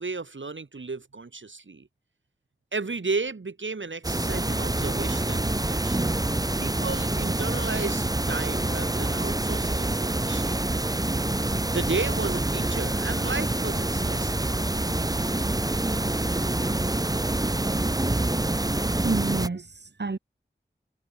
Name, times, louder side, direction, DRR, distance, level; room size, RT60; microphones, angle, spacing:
voice 1, 0.0-1.9 2.7-6.2 6.6-10.6 11.6-14.4, right 3 dB, 80° right, 2.3 m, -34 dB
sound 1, 4.0-19.5, right 2 dB, 20° right, 0.7 m, -26 dB
voice 2, 18.7-20.2, right 3 dB, 65° right, 1.6 m, -30 dB
wide cardioid pair, 50°, 19 cm